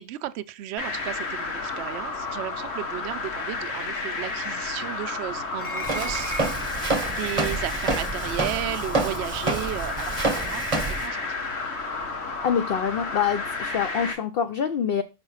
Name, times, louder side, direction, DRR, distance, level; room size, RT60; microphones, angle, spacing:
voice 1, 0.0-6.3 7.1-10.7 11.0-11.4, right 13 dB, 65° right, 0.7 m, -34 dB
sound 1, 0.8-14.1, left 3 dB, 50° left, 1.4 m, -32 dB
sound 2, 5.5-6.9 8.2-8.3 9.2-9.4, equal, 25° left, 0.8 m, -35 dB
Walk footsteps, 5.8-11.1, right 3 dB, 30° right, 0.7 m, -28 dB
voice 2, 12.4-15.0, left 7 dB, 65° left, 0.5 m, -25 dB
5.7 x 4.4 x 5.5 m
omnidirectional pair, 1.5 m